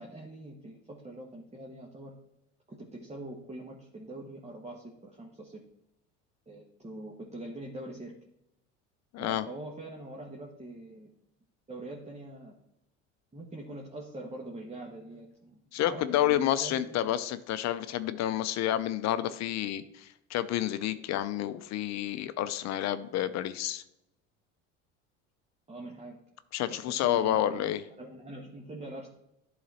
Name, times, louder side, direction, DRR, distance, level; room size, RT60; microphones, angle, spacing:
voice 1, 0.0-2.1 2.7-5.6 6.5-8.1 9.2-11.1 11.7-12.5 13.3-17.1 25.7-26.2 26.9-27.7 28.0-29.1, right 1 dB, 20° right, -1 dB, 1.4 m, -43 dB
voice 2, 9.1-9.4 15.7-23.8 26.5-27.8, left 12 dB, 50° left, 13 dB, 0.6 m, -29 dB
11.5 x 4.0 x 4.3 m, 0.84 s
hypercardioid pair, 75°, 35 cm